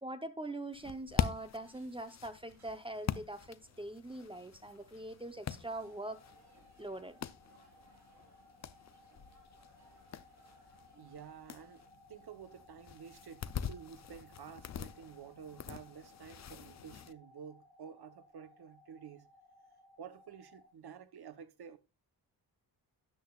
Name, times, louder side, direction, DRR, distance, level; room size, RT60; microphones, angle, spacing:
voice 1, 0.0-6.2 6.8-7.2, right 1 dB, 15° right, 0.8 m, -43 dB
sound 1, 0.7-17.1, left 8 dB, 40° left, 0.5 m, -43 dB
sound 2, 1.3-11.9, right 3 dB, 40° right, 3.8 m, -69 dB
sound 3, 5.6-20.7, left 1 dB, 25° left, 5.3 m, -62 dB
voice 2, 11.0-11.8 12.1-19.3 20.0-21.8, right 7 dB, 65° right, 1.0 m, -51 dB
12.5 x 10.0 x 2.4 m
wide cardioid pair, 160°, 41 cm